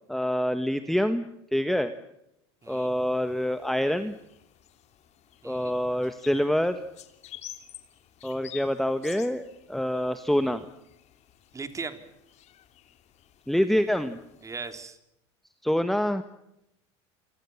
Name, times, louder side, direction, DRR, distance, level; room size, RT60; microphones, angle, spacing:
voice 1, 0.1-1.2 1.5-1.9 2.7-4.1 5.4-6.8 8.2-10.6 13.5-14.2 15.6-16.2, equal, ahead, 10 dB, 1.4 m, -26 dB
sound 1, 2.6-14.8, left 12 dB, 50° left, 3.0 m, -51 dB
voice 2, 5.4-5.7 11.5-12.0 14.4-15.0, right 4 dB, 20° right, 9 dB, 3.4 m, -38 dB
28.0 x 25.0 x 7.2 m, 0.83 s
supercardioid pair, 100°, 15 cm